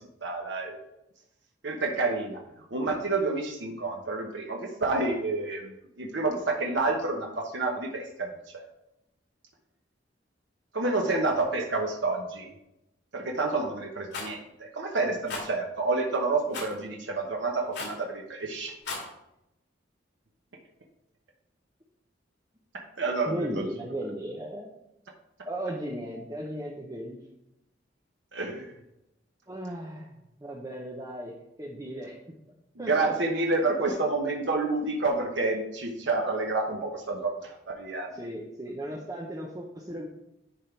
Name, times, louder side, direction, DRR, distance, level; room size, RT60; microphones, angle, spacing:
voice 1, 0.2-0.8 1.6-2.4 2.7-8.6 10.7-12.5 13.1-18.7 23.0-23.4 28.3-28.7 32.8-38.2, right 3 dB, 70° right, 1 dB, 1.0 m, -29 dB
Rattle, 14.1-14.3 15.3-15.5 16.5-16.7 17.7-18.0 18.7-19.1, left 3 dB, 65° left, 2.5 m, -35 dB
voice 2, 23.2-24.7 25.5-27.2 29.5-31.3 31.6-32.2 32.8-33.1 33.6-34.0 38.1-40.1, right 1 dB, 20° right, -2 dB, 0.8 m, -36 dB
10.5 x 3.7 x 4.5 m, 0.86 s
head